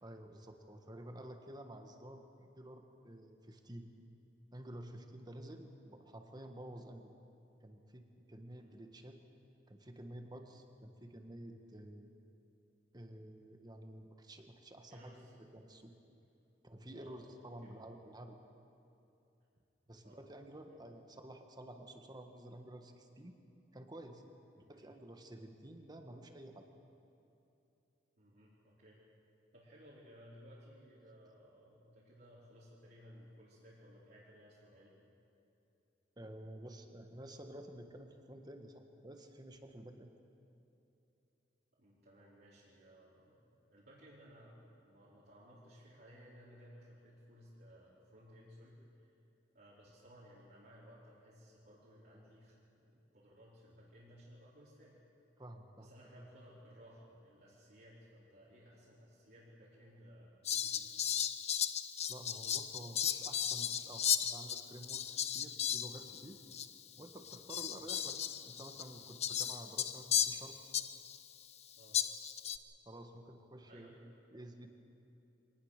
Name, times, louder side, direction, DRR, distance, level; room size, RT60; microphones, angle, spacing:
voice 1, 0.0-3.9 4.5-7.0 7.6-9.2 9.7-12.1 12.9-15.1 15.4-15.9 16.6-18.4 19.9-23.4 23.7-24.2 24.7-26.7 36.2-40.1 55.4-55.9 62.1-66.4 67.0-68.2 68.4-70.6 72.8-74.7, right 1 dB, 25° right, 5 dB, 1.6 m, -51 dB
voice 2, 14.9-15.3 16.9-17.3 17.6-17.7 20.0-20.2 24.5-24.9 28.2-29.0 29.5-35.0 41.8-49.1 49.5-55.0 55.8-61.0 66.9-67.0 67.5-67.6 71.8-72.0 73.7-74.0, equal, 60° right, -9 dB, 4.4 m, -59 dB
Fowl, 60.4-66.3 66.5-66.7 67.2-71.2 71.9-72.6, left 9 dB, 40° left, 0.7 m, -36 dB
24.5 x 19.0 x 6.7 m, 2.9 s
head